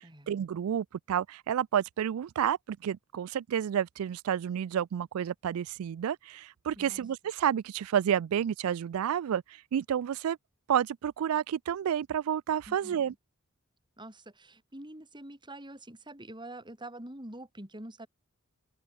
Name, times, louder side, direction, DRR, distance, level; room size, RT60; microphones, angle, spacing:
voice 1, 0.3-9.4 9.7-10.4 10.7-13.1, right 9 dB, 70° right, 0.3 m, -30 dB
voice 2, 12.7-13.2 14.0-18.1, right 1 dB, 20° right, 5.2 m, -46 dB
open air
head